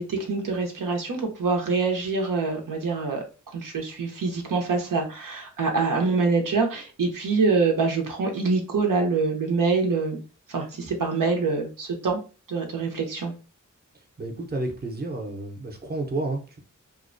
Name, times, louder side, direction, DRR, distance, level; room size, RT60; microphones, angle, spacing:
voice 1, 0.0-3.2 3.5-10.2 10.5-12.2 12.5-13.3, right 4 dB, 85° right, 2 dB, 0.6 m, -25 dB
voice 2, 14.2-16.6, right 2 dB, 30° right, 3 dB, 0.6 m, -31 dB
2.4 x 2.1 x 2.5 m, 0.34 s
wide cardioid pair, 50°, 32 cm